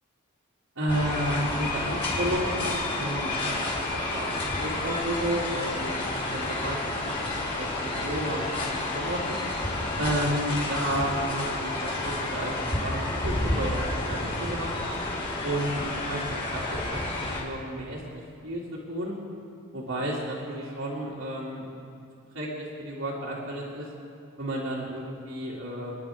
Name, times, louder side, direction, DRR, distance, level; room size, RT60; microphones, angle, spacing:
voice 1, 0.7-6.0 6.3-9.4 10.0-14.9 15.4-19.2 19.7-21.7 22.3-23.9 24.4-26.0, right 1 dB, 75° right, -7 dB, 2.7 m, -32 dB
sound 1, 0.9-17.4, left 2 dB, 25° left, 4.2 m, -30 dB
30.0 x 10.5 x 3.7 m, 2.6 s
head